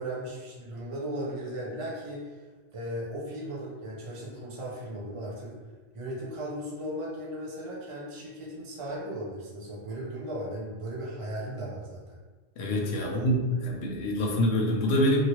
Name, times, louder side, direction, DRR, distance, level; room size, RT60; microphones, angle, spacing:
voice 1, 0.0-2.4 2.7-5.5 5.9-12.2 13.0-13.3, right 1 dB, 40° right, -5 dB, 0.5 m, -36 dB
voice 2, 12.6-15.2, equal, 65° left, 0 dB, 0.8 m, -26 dB
2.9 x 2.7 x 2.9 m, 1.3 s
omnidirectional pair, 1.2 m